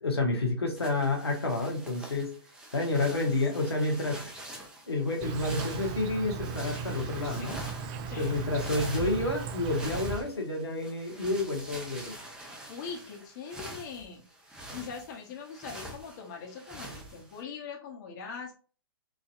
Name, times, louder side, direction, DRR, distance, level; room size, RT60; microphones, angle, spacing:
voice 1, 0.0-2.3 2.7-4.2 4.9-7.6 8.2-12.1, left 2 dB, 90° left, 1 dB, 1.3 m, -29 dB
sound 1, 0.8-17.4, right 1 dB, 5° right, 0.9 m, -45 dB
voice 2, 2.9-3.3 7.2-7.5 8.1-8.3 12.7-14.2 14.5-18.5, left 6 dB, 45° left, 0 dB, 1.3 m, -42 dB
Insect, 5.2-10.2, right 6 dB, 30° right, 0.5 m, -37 dB
4.9 x 2.7 x 2.6 m, 0.37 s
figure-of-eight pair, 120°, 13 cm